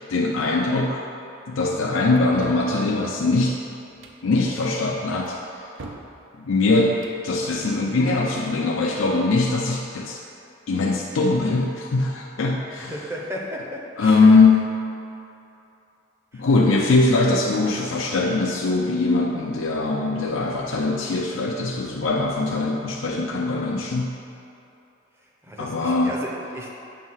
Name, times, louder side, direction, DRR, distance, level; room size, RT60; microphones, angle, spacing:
voice 1, 0.1-1.0 1.5-3.6 4.2-5.7 6.4-7.0 7.2-10.2 10.7-12.9 14.0-14.7 16.3-24.2 25.6-26.2, left 3 dB, 85° left, -2 dB, 0.5 m, -21 dB
sound 1, 2.2-2.7 3.9-4.2 5.3-6.1 6.9-7.2, right 2 dB, 75° right, 0.6 m, -41 dB
voice 2, 12.9-14.2 16.3-16.4 25.4-26.7, equal, 15° right, -2 dB, 0.7 m, -34 dB
7.5 x 2.7 x 5.5 m, 2.7 s
head